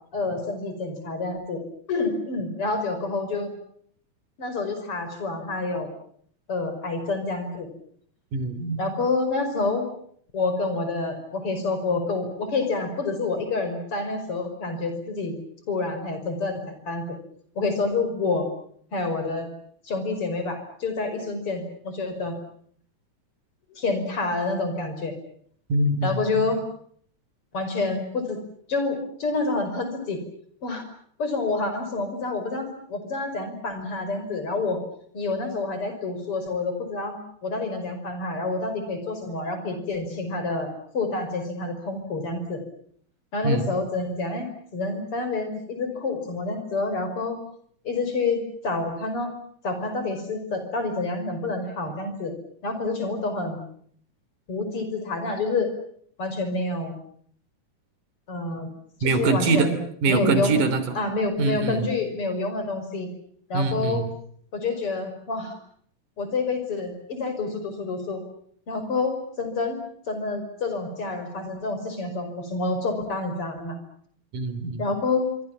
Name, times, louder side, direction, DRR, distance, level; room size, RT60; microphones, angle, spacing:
voice 1, 0.1-1.6 1.9-3.5 4.4-5.9 6.5-7.7 8.8-9.9 10.3-15.3 15.7-17.2 17.6-18.5 18.9-19.5 19.8-22.4 23.7-25.2 26.0-26.6 27.5-28.4 28.7-30.2 30.6-30.8 31.2-34.8 35.1-42.6 43.3-47.4 47.8-49.3 49.6-52.3 52.6-53.6 54.5-55.7 56.2-56.9 58.3-58.7 59.0-59.8 60.1-60.6 60.9-63.1 63.5-64.0 64.5-65.6 66.2-68.2 68.7-73.8 74.8-75.3, left 3 dB, 45° left, 8 dB, 6.1 m, -28 dB
voice 2, 8.3-8.8 25.7-26.5 43.4-43.7 59.0-59.7 60.0-60.8 61.4-61.9 63.5-64.1 74.3-74.9, right 3 dB, 85° right, 11 dB, 4.6 m, -23 dB
26.0 x 25.0 x 7.4 m, 0.63 s
omnidirectional pair, 3.5 m